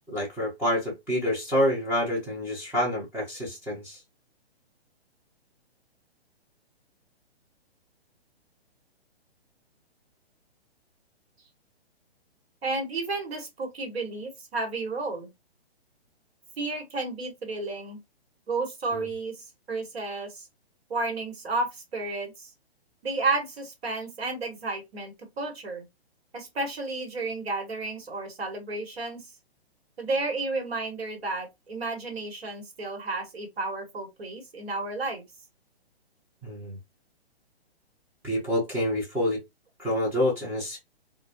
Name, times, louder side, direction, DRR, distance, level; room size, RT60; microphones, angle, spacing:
voice 1, 0.1-4.0 18.9-19.0 36.4-36.8 38.2-39.4 39.8-40.8, left 1 dB, 5° right, 0.7 m, -27 dB
voice 2, 12.6-15.3 16.6-18.0 18.5-20.5 20.9-22.5 23.0-25.8 26.3-29.2 30.0-35.2, right 3 dB, 70° right, 1.2 m, -32 dB
2.3 x 2.2 x 2.8 m
hypercardioid pair, 135°, 32 cm